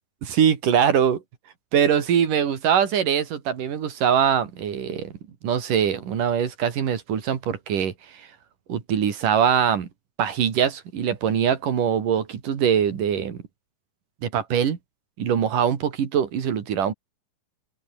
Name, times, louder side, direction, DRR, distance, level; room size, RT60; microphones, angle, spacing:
voice 1, 0.2-1.2 1.7-5.1 5.4-7.9 8.7-9.9 10.2-13.4 14.2-14.8 15.2-16.9, right 8 dB, 70° right, 4.2 m, -22 dB
omnidirectional pair, 3.9 m